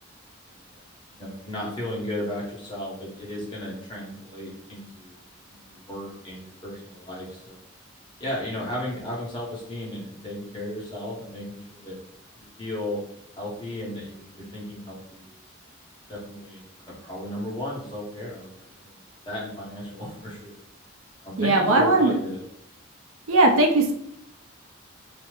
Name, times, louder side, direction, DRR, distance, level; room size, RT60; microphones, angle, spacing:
voice 1, 1.1-5.2 5.5-7.6 8.2-12.0 12.6-13.0 13.4-15.3 16.1-19.0 19.2-20.5 21.2-22.4, left 1 dB, 25° left, -5 dB, 0.8 m, -35 dB
voice 2, 21.4-22.1 23.3-23.9, right 2 dB, 80° right, 2 dB, 0.5 m, -18 dB
3.2 x 2.0 x 2.9 m, 0.71 s
head